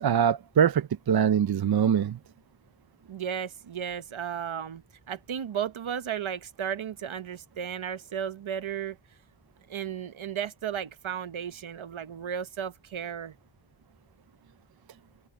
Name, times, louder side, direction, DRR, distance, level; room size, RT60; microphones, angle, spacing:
voice 1, 0.0-2.2, right 8 dB, 50° right, 0.5 m, -23 dB
voice 2, 3.1-9.0 9.7-13.3, right 8 dB, 70° right, 1.0 m, -34 dB
wide cardioid pair, 90°, 50 cm